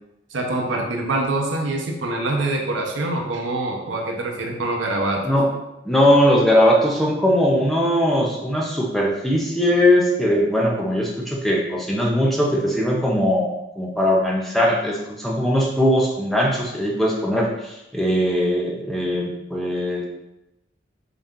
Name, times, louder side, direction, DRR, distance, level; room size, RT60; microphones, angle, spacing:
voice 1, 0.3-5.2, right 2 dB, 75° right, 1 dB, 0.7 m, -25 dB
voice 2, 5.8-20.0, equal, ahead, -3 dB, 0.4 m, -20 dB
4.0 x 2.3 x 3.6 m, 0.93 s
head